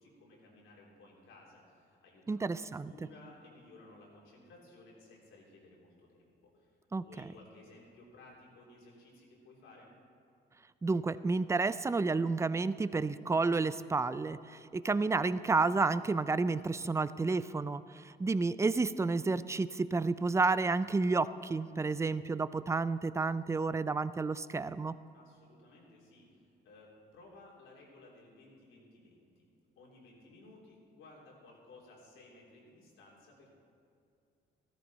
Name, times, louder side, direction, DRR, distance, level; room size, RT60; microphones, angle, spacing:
voice 1, 0.0-9.9 25.1-29.5 29.7-33.5, left 2 dB, 85° left, -3 dB, 3.4 m, -57 dB
voice 2, 2.3-2.9 6.9-7.0 10.8-24.9, right 3 dB, 15° right, 15 dB, 0.4 m, -31 dB
14.5 x 13.5 x 4.2 m, 2.6 s
cardioid pair, 90°, 20 cm